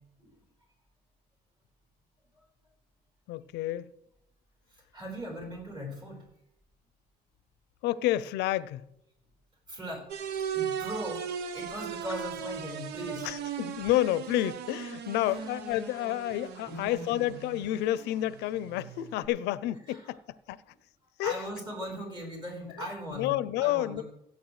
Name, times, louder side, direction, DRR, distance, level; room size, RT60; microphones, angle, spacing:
voice 1, 3.3-3.9 7.8-8.8 13.2-20.6 21.2-21.4 23.1-24.0, left 14 dB, 85° left, 0.5 m, -30 dB
voice 2, 4.7-6.2 9.7-10.1 10.3-13.3 15.2-15.5 16.6-17.3 19.9-20.1 20.7-20.8 21.2-24.0, equal, 25° right, 4.7 m, -39 dB
sound 1, 10.1-19.3, right 8 dB, 80° right, 0.8 m, -38 dB
16.5 x 8.5 x 3.2 m
cardioid pair, 110°, 17 cm